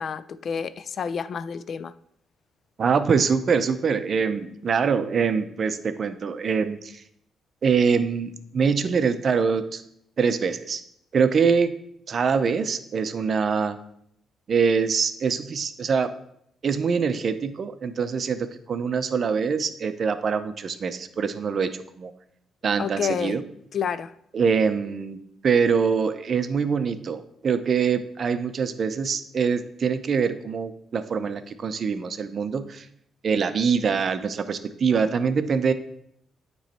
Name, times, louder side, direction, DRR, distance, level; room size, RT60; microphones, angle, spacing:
voice 1, 0.0-1.9 22.8-23.4 23.7-24.1, left 7 dB, 55° left, 0.3 m, -29 dB
voice 2, 2.8-7.0 7.6-9.8 10.2-10.8 11.1-11.7 12.1-13.8 14.5-16.1 16.6-22.1 22.6-23.4 24.3-25.2 25.4-32.9 33.2-35.7, right 6 dB, 50° right, 0.5 m, -24 dB
9.1 x 3.1 x 4.3 m
cardioid pair, 90°, 0 cm